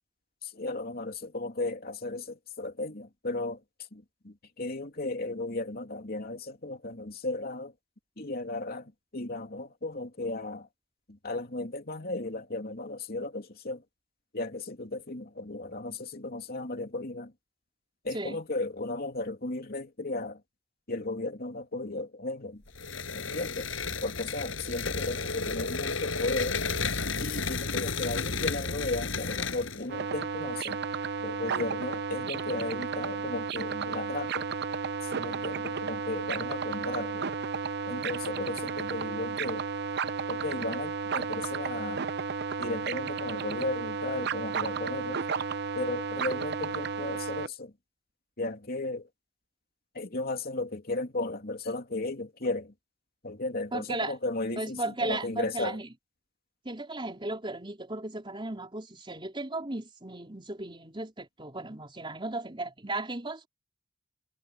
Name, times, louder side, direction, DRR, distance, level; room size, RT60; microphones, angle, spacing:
voice 1, 0.4-7.7 8.2-10.7 11.1-13.8 14.3-17.3 18.0-20.4 20.9-22.6 23.1-23.7 24.0-26.6 27.2-30.8 31.2-34.5 35.0-37.4 37.9-39.7 40.3-42.1 42.6-45.2 45.7-47.7 48.4-49.1 49.9-52.7 53.2-55.8, left 2 dB, 50° left, 2.9 m, -35 dB
sound 1, 22.8-29.9, left 4 dB, 85° left, 6.3 m, -32 dB
sound 2, 29.9-47.5, right 5 dB, 55° right, 0.7 m, -33 dB
voice 2, 53.7-54.2 54.6-55.9 56.6-63.5, right 2 dB, 25° right, 4.2 m, -35 dB
head